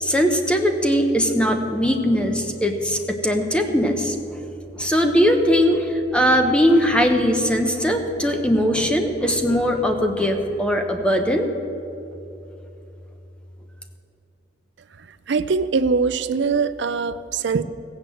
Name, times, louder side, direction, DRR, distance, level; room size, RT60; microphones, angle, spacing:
voice 1, 0.0-4.2 4.7-11.5, equal, 5° left, 4 dB, 1.0 m, -20 dB
voice 2, 15.3-17.6, right 4 dB, 70° right, 13 dB, 0.5 m, -22 dB
16.0 x 8.0 x 7.7 m, 2.9 s
head